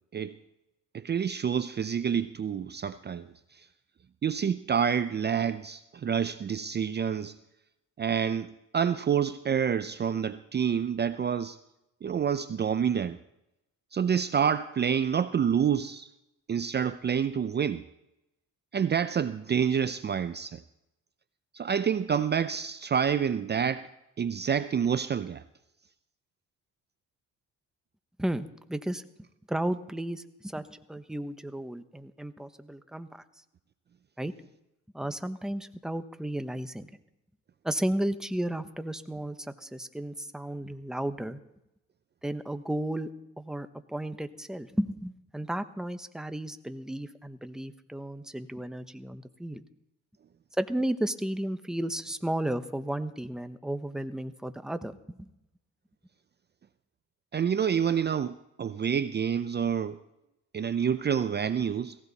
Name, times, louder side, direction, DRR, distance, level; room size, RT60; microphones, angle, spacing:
voice 1, 0.9-3.7 4.2-7.4 8.0-11.6 12.0-13.2 13.9-16.1 16.5-17.8 18.7-20.6 21.5-23.9 24.2-25.4 57.3-60.0 60.5-62.0, right 7 dB, 35° right, 0.5 m, -28 dB
voice 2, 28.2-29.0 29.5-33.2 34.2-34.3 34.9-36.9 37.6-41.4 42.2-43.1 43.4-49.6 50.5-55.3, right 1 dB, ahead, 1.0 m, -33 dB
18.0 x 15.5 x 4.1 m
cardioid pair, 90°, 30 cm